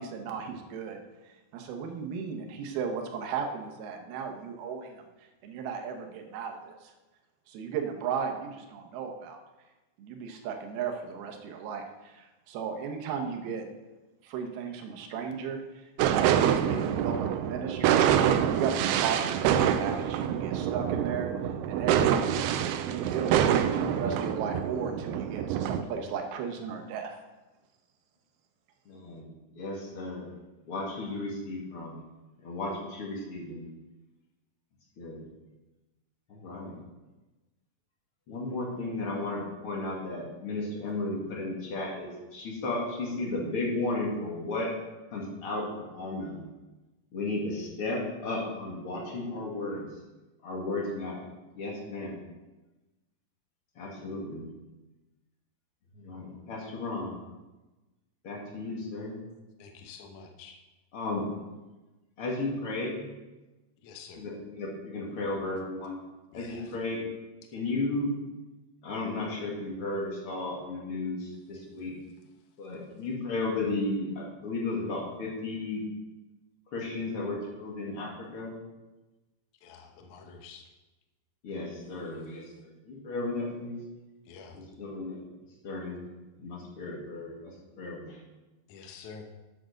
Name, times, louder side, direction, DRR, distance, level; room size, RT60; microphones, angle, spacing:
voice 1, 0.0-6.9 7.5-9.4 10.0-13.7 14.2-18.0 18.5-21.3 21.7-22.5 22.8-27.2, right 6 dB, 70° right, 4 dB, 2.7 m, -35 dB
sound 1, 16.0-25.8, right 9 dB, 85° right, 2.3 m, -26 dB
voice 2, 28.9-29.3 29.5-30.3 30.6-32.0 32.4-33.7 35.0-35.2 36.3-36.7 38.3-44.7 45.1-46.4 47.1-49.9 50.4-51.3 51.5-52.2 53.8-54.5 55.9-57.2 58.2-59.2 60.9-61.3 62.2-63.1 64.2-66.0 66.3-67.1 67.5-68.2 68.8-71.9 72.6-75.8 76.7-78.6 81.4-83.8 84.5-85.2 85.6-86.0 86.4-88.2, left 2 dB, 45° left, -3 dB, 2.0 m, -34 dB
voice 3, 59.6-60.6 63.8-64.2 66.3-66.8 79.6-80.7 84.3-84.6 88.7-89.2, left 5 dB, 75° left, 3 dB, 1.7 m, -48 dB
8.7 x 7.5 x 6.5 m, 1.1 s
omnidirectional pair, 5.2 m